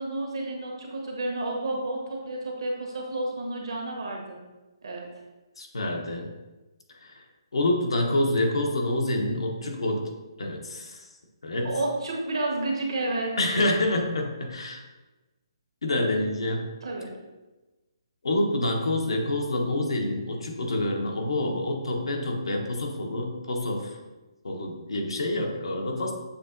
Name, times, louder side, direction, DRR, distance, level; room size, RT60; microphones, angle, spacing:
voice 1, 0.0-4.4 4.8-5.1 11.6-13.3 16.8-17.1, right 2 dB, 75° right, 0 dB, 1.2 m, -30 dB
voice 2, 5.6-6.3 7.0-7.2 7.5-10.1 10.4-11.1 11.4-11.7 13.4-14.8 15.8-16.7 18.2-24.0 24.4-26.1, left 1 dB, 80° left, 2 dB, 0.9 m, -27 dB
6.7 x 2.8 x 2.6 m, 1.1 s
hypercardioid pair, 150°, 3 cm